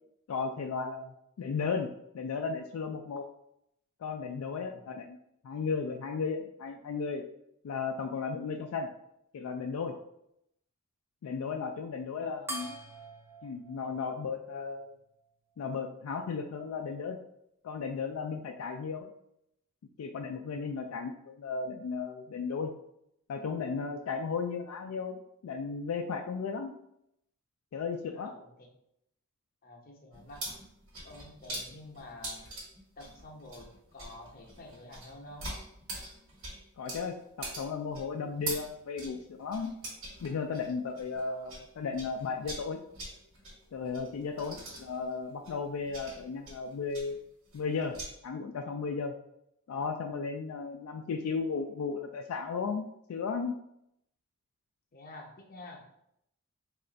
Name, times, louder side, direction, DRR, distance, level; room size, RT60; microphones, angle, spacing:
voice 1, 0.3-1.9 2.1-3.3 4.0-5.2 5.4-7.2 7.6-8.9 9.3-9.9 11.2-12.8 13.4-14.9 15.6-17.2 17.6-19.1 20.0-22.7 23.3-26.7 27.7-28.3 36.8-39.7 40.2-42.8 43.7-47.2 47.5-48.0 48.2-49.1 49.7-52.8 53.1-53.5, left 5 dB, 75° left, 4 dB, 0.3 m, -35 dB
voice 2, 12.2-12.5 14.2-14.4 18.5-18.6 20.5-20.9 28.1-28.5 29.6-30.5 31.0-32.5 33.0-35.5 54.9-55.9, left 2 dB, 45° left, 1 dB, 0.7 m, -49 dB
sound 1, 12.5-15.3, right 1 dB, 10° right, 0.5 m, -45 dB
sound 2, 30.1-41.7 41.9-48.1, right 2 dB, 65° right, 1.2 m, -43 dB
3.2 x 2.4 x 3.8 m, 0.77 s
head